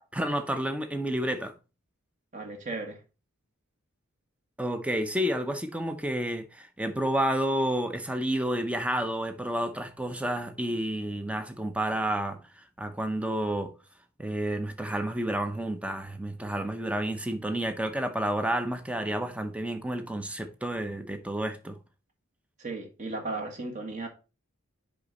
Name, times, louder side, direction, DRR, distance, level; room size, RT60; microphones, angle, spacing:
voice 1, 0.1-1.5 4.6-13.7 14.2-21.8, right 1 dB, 5° right, 0.6 m, -30 dB
voice 2, 2.3-3.0 22.6-24.1, right 3 dB, 35° right, 1.6 m, -35 dB
6.7 x 5.0 x 4.0 m
head